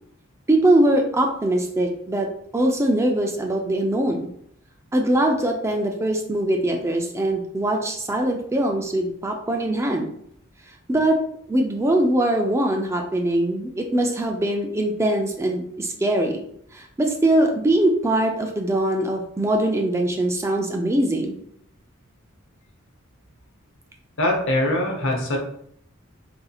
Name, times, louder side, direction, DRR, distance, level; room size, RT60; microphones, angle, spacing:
voice 1, 0.5-4.3 4.9-10.1 10.9-11.2 11.5-16.4 16.7-21.4, right 1 dB, 15° right, 2 dB, 0.3 m, -22 dB
voice 2, 24.2-25.4, left 1 dB, 65° left, 1 dB, 0.8 m, -22 dB
4.0 x 2.7 x 2.3 m, 0.68 s
head